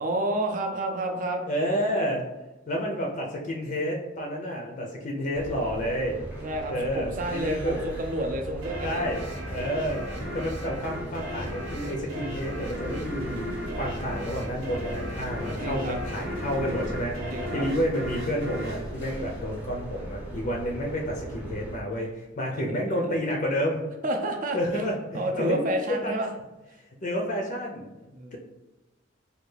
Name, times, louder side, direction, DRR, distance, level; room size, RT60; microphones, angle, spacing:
voice 1, 0.0-1.4 6.4-9.0 15.4-16.0 17.3-17.7 22.5-23.0 24.0-24.6 25.1-26.3 28.1-28.4, right 1 dB, 45° right, 4 dB, 0.5 m, -30 dB
voice 2, 1.4-2.3 2.7-6.2 6.7-7.8 8.8-10.0 10.3-17.2 17.5-23.8 24.5-26.1 27.0-28.0 28.3-28.4, equal, 40° left, 0 dB, 0.5 m, -30 dB
sound 1, 5.3-21.8, right 1 dB, 10° right, 0.8 m, -38 dB
sound 2, 8.6-19.9, equal, 85° right, 0.7 m, -36 dB
3.3 x 2.3 x 3.2 m, 1.0 s
head